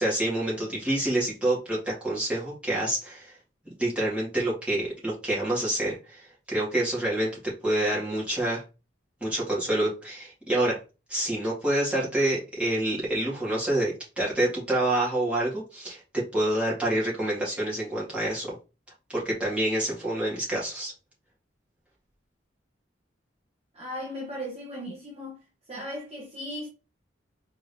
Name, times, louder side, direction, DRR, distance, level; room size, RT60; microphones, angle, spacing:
voice 1, 0.0-3.3 3.6-7.3 7.6-8.6 9.2-10.8 11.1-16.0 16.3-18.6 19.1-20.9, right 1 dB, 5° right, 2.1 m, -27 dB
voice 2, 23.7-25.4 25.7-26.7, equal, 30° right, 0.9 m, -37 dB
4.5 x 3.4 x 2.8 m
head